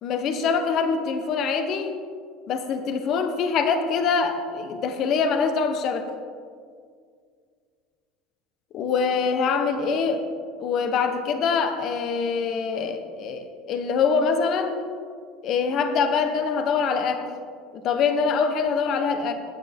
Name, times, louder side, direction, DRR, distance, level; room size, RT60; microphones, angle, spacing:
voice 1, 0.0-1.9 2.5-6.1 8.7-10.2 10.6-14.8 15.4-17.3 17.7-19.3, left 5 dB, 40° left, 7 dB, 1.0 m, -24 dB
13.5 x 9.3 x 3.6 m, 2.1 s
cardioid pair, 160°, 0 cm